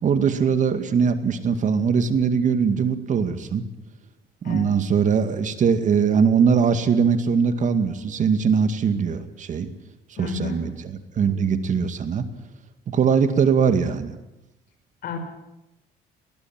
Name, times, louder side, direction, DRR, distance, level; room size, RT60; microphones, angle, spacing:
voice 1, 0.0-3.6 4.4-9.7 10.2-12.3 12.9-14.2, right 6 dB, 50° right, 9 dB, 2.2 m, -21 dB
voice 2, 10.2-10.6 15.0-15.2, left 6 dB, 65° left, 7 dB, 5.4 m, -31 dB
20.5 x 19.0 x 9.0 m, 0.92 s
cardioid pair, 110°, 17 cm